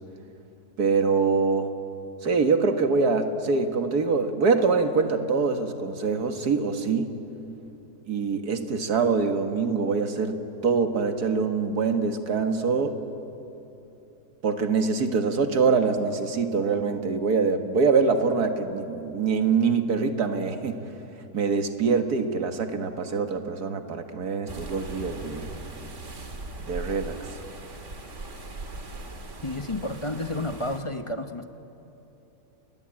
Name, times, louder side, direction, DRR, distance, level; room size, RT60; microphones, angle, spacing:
voice 1, 0.8-1.7 2.2-7.1 8.1-10.4 10.6-12.9 14.4-20.8 21.3-25.5 26.6-27.3, right 4 dB, 90° right, 7 dB, 2.2 m, -24 dB
sound 1, 24.5-30.8, right 2 dB, 50° right, 2.3 m, -39 dB
voice 2, 29.4-31.5, left 2 dB, 25° left, 8 dB, 0.9 m, -31 dB
30.0 x 22.0 x 8.9 m, 3.0 s
omnidirectional pair, 1.6 m